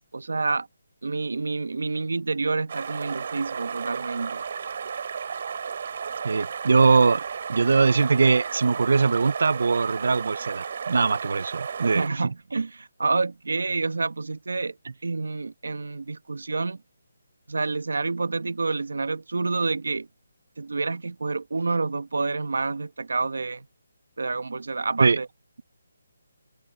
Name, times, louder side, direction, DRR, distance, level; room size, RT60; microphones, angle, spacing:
voice 1, 0.1-0.7 1.0-4.4 11.9-14.7 15.0-16.8 17.5-20.1 20.6-23.6 24.2-25.3, right 3 dB, 75° right, 1.4 m, -28 dB
sound 1, 2.7-12.1, right 6 dB, 35° right, 4.2 m, -33 dB
voice 2, 6.2-7.2 7.5-12.2 25.0-25.2, right 4 dB, 50° right, 1.0 m, -21 dB
hypercardioid pair, 180°, 0 cm